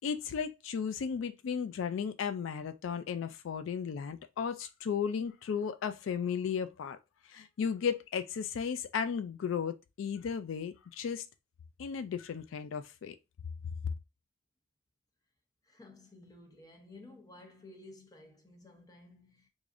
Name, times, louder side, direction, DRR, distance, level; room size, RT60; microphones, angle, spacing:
voice 1, 0.0-7.0 7.3-11.3 11.8-13.2, left 7 dB, 85° left, 0.3 m, -35 dB
voice 2, 15.6-19.5, left 2 dB, 20° left, 0.7 m, -54 dB
4.7 x 2.6 x 2.5 m
head